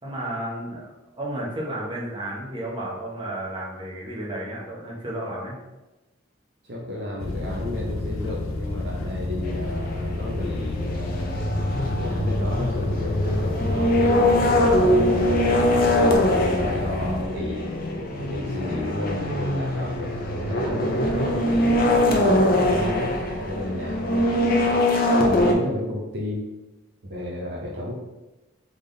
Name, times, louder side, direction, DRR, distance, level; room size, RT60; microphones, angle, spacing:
voice 1, 0.0-5.6, right 1 dB, 25° right, -5 dB, 1.1 m, -32 dB
voice 2, 6.6-15.6 16.2-17.7 18.2-23.1 23.4-26.4 27.0-27.9, left 1 dB, 55° right, -3 dB, 0.8 m, -33 dB
sound 1, 7.2-17.2, left 2 dB, 85° left, 0.6 m, -30 dB
sound 2, 9.4-25.5, left 1 dB, 45° left, 0.6 m, -22 dB
3.7 x 3.6 x 3.9 m, 1.0 s
head